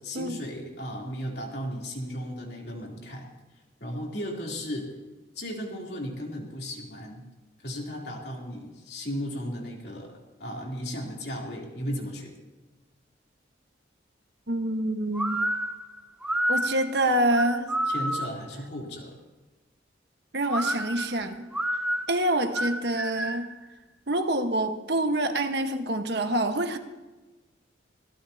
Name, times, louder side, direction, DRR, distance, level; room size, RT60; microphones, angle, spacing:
voice 1, 0.0-3.3 3.8-4.9 5.3-7.2 7.6-10.1 10.4-12.3 17.9-19.2, equal, 60° left, -1 dB, 3.3 m, -35 dB
voice 2, 14.5-15.4 16.5-17.7 20.3-21.5 22.1-23.5 24.1-26.8, right 1 dB, 60° right, 6 dB, 1.3 m, -26 dB
sound 1, 15.1-18.5 20.5-23.6, right 1 dB, 5° right, 0.7 m, -29 dB
24.0 x 18.0 x 2.9 m, 1.2 s
head